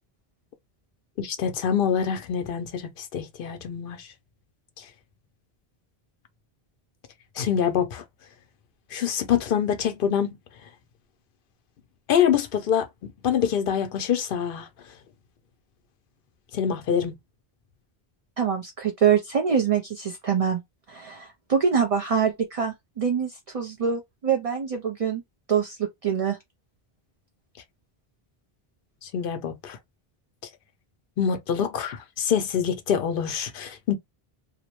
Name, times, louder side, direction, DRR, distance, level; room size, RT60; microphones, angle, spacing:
voice 1, 1.2-4.1 4.8-4.9 7.4-8.0 8.9-10.3 12.1-14.7 16.5-17.2 29.0-29.8 31.2-34.0, left 8 dB, 65° left, 0.7 m, -25 dB
voice 2, 18.4-20.6 20.9-25.2 25.5-26.4, right 7 dB, 45° right, 0.5 m, -25 dB
2.5 x 2.0 x 2.9 m
omnidirectional pair, 1.0 m